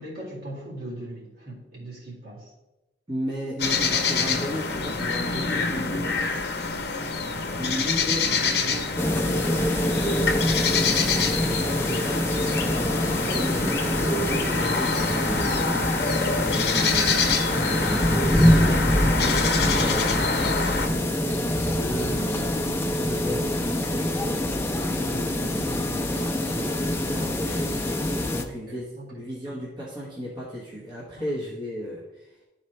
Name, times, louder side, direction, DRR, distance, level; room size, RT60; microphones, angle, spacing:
voice 1, 0.0-2.5 11.5-11.9 28.7-29.1, right 1 dB, 55° right, -5 dB, 2.2 m, -39 dB
voice 2, 3.1-6.4 7.6-10.1 11.4-15.7 16.2-20.2 20.8-22.6 22.9-24.2 24.7-27.8 28.3-32.3, equal, 25° right, -6 dB, 1.1 m, -35 dB
sound 1, 3.6-20.9, left 4 dB, 60° left, 0.7 m, -26 dB
sound 2, 9.0-28.4, left 1 dB, 15° left, 0.4 m, -25 dB
11.0 x 4.2 x 3.2 m, 1.0 s
head